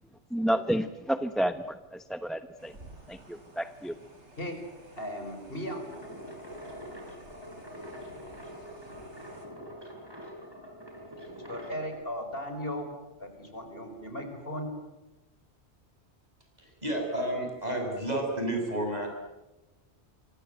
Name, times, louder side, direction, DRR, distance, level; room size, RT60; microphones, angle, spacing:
voice 1, 0.3-2.8 3.1-4.0, equal, ahead, 9 dB, 0.8 m, -30 dB
sound 1, 2.6-9.5, right 1 dB, 80° right, 5.3 m, -53 dB
voice 2, 5.0-5.8 11.3-12.9 13.2-14.7, equal, 55° left, 5 dB, 5.5 m, -37 dB
sound 2, 5.6-12.0, equal, 20° right, 6.7 m, -44 dB
voice 3, 16.6-19.3, right 1 dB, 35° right, 1 dB, 7.5 m, -31 dB
27.5 x 24.5 x 8.1 m, 1.1 s
omnidirectional pair, 1.2 m